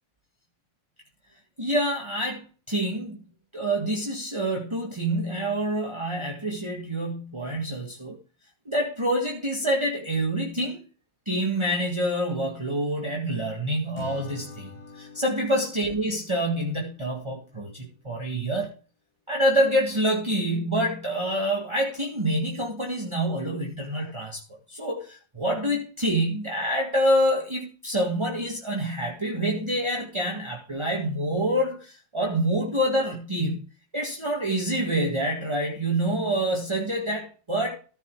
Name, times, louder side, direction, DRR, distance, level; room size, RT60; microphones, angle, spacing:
voice 1, 1.6-3.2 3.5-8.2 8.7-10.8 11.3-14.7 15.0-18.7 19.3-24.4 24.7-33.7 33.9-37.8, right 1 dB, 20° right, 1.9 m, -27 dB
Acoustic guitar / Strum, 14.0-17.2, left 3 dB, 70° left, 2.1 m, -44 dB
14.5 x 5.7 x 4.7 m
omnidirectional pair, 1.5 m